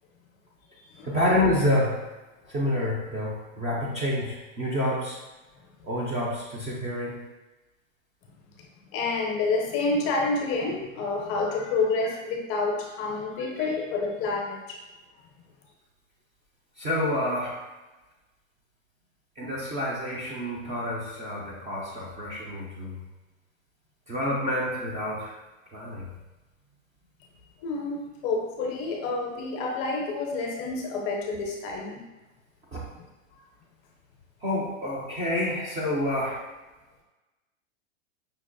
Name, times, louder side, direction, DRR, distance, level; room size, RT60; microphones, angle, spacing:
voice 1, 1.1-2.0 2.5-5.2 5.8-7.1 16.8-17.6 19.4-23.0 24.1-25.4 25.7-26.1 32.7-32.8 34.4-36.4, left 1 dB, 20° right, -5 dB, 0.4 m, -28 dB
voice 2, 8.9-14.8 27.6-32.0, left 3 dB, 35° left, 0 dB, 0.6 m, -28 dB
5.3 x 2.3 x 2.2 m, 1.1 s
hypercardioid pair, 125°, 40 cm